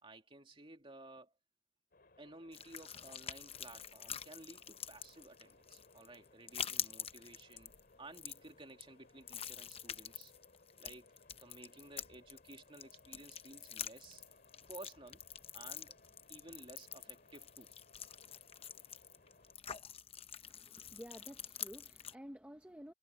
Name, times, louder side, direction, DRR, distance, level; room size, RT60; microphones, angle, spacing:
voice 1, 0.0-1.3 2.2-7.7 8.0-10.3 10.8-11.0 11.4-14.2 14.7-15.2 15.5-16.0 16.3-17.7, right 2 dB, 25° right, 2.6 m, -55 dB
sound 1, 1.9-19.6, left 3 dB, 45° left, 3.8 m, -66 dB
sound 2, 2.5-22.1, left 9 dB, 30° left, 0.8 m, -47 dB
voice 2, 20.4-22.9, equal, 5° right, 0.9 m, -52 dB
head